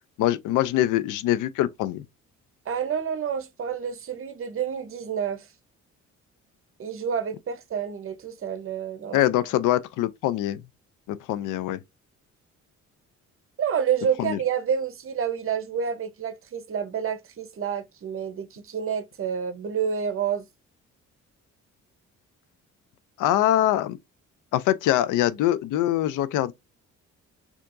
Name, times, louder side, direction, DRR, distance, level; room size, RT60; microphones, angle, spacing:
voice 1, 0.2-2.0 9.1-10.6 11.1-11.8 14.2-14.4 23.2-24.0 24.5-26.5, left 13 dB, 90° left, 0.5 m, -23 dB
voice 2, 2.7-5.5 6.8-9.2 13.6-20.5, right 7 dB, 45° right, 0.8 m, -29 dB
4.4 x 2.9 x 2.5 m
cardioid pair, 90°, 30 cm